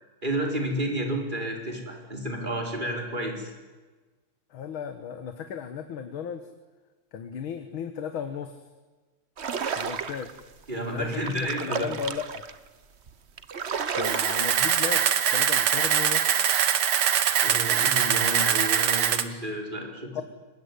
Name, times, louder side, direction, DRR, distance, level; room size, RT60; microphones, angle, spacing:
voice 1, 0.2-3.5 10.7-11.9 17.4-20.2, right 1 dB, 20° right, 1 dB, 4.7 m, -31 dB
voice 2, 4.5-6.5 7.1-8.6 9.7-10.3 10.9-11.1 11.6-12.4 13.9-15.0 15.3-16.3 20.2-20.3, left 7 dB, 75° left, 8 dB, 2.1 m, -35 dB
sound 1, 9.4-10.4 11.0-12.5 13.1-13.2 13.4-14.8, right 6 dB, 40° right, 1.0 m, -32 dB
Camera, 14.0-19.2, right 9 dB, 80° right, 2.2 m, -23 dB
25.0 x 21.0 x 9.6 m, 1.3 s
omnidirectional pair, 2.3 m